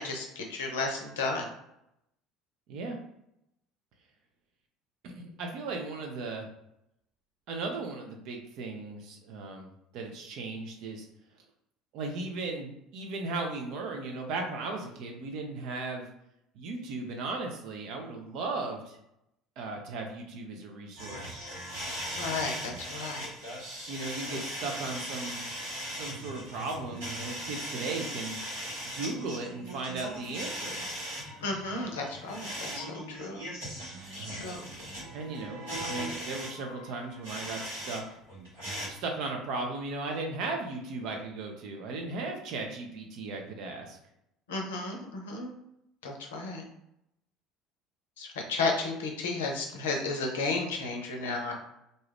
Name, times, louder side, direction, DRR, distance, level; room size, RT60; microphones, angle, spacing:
voice 1, 0.0-1.5 22.1-23.3 24.3-24.7 31.4-33.4 34.2-34.6 44.5-45.5 46.0-46.6 48.2-51.5, left 3 dB, 70° left, 2 dB, 0.6 m, -33 dB
voice 2, 5.0-6.5 7.5-11.1 11.9-16.1 16.5-19.0 19.6-21.4 23.9-25.4 25.9-28.4 28.8-30.8 34.2-34.7 35.1-38.2 38.9-44.0, right 3 dB, 55° right, 3 dB, 0.6 m, -36 dB
sound 1, 21.0-38.0 38.3-38.9, equal, 75° right, 1.4 m, -39 dB
2.6 x 2.3 x 3.3 m, 0.81 s
figure-of-eight pair, 60°, 0 cm